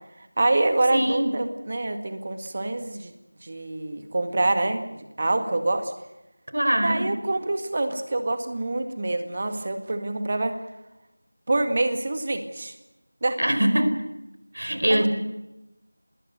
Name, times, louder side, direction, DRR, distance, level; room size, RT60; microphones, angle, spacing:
voice 1, 0.4-3.1 3.4-5.9 6.8-10.5 11.5-12.7 13.2-13.4 14.9-15.1, right 2 dB, 30° right, 7 dB, 1.9 m, -26 dB
voice 2, 0.9-1.3 6.5-7.1 13.4-14.0 14.5-15.1, equal, 65° right, 10 dB, 4.3 m, -22 dB
28.0 x 20.5 x 6.8 m, 0.94 s
figure-of-eight pair, 175°, 0 cm